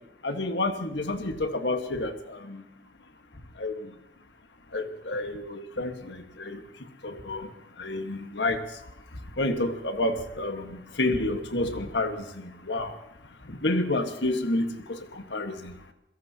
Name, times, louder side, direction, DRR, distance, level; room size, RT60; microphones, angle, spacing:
voice 1, 0.2-2.6 3.6-3.9 4.7-6.6 7.0-7.5 7.8-8.8 9.4-13.0 13.4-15.7, left 2 dB, 75° left, 7 dB, 1.5 m, -30 dB
27.5 x 17.0 x 2.9 m, 0.84 s
head